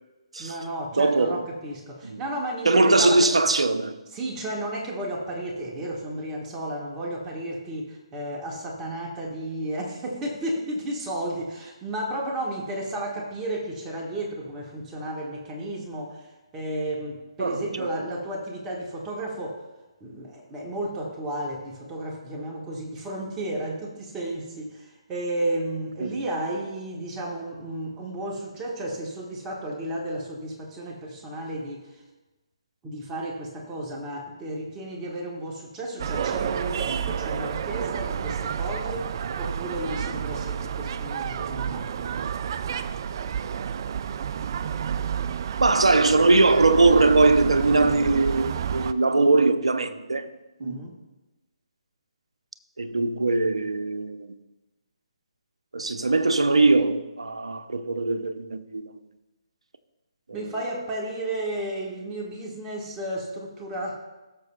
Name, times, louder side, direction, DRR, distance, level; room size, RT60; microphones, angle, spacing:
voice 1, 0.4-3.4 4.1-19.6 20.0-32.0 32.8-42.1 50.6-51.0 60.3-64.0, right 1 dB, 15° right, 1.4 m, -33 dB
voice 2, 1.0-1.4 2.0-2.2 2.6-4.0 17.4-17.9 26.0-26.1 45.6-50.3 50.6-50.8 52.8-54.3 55.7-58.9 60.3-60.5, right 3 dB, 75° right, 0.7 m, -21 dB
sound 1, 36.0-48.9, right 8 dB, 45° right, 0.3 m, -30 dB
17.5 x 6.7 x 2.3 m
figure-of-eight pair, 140°, 3 cm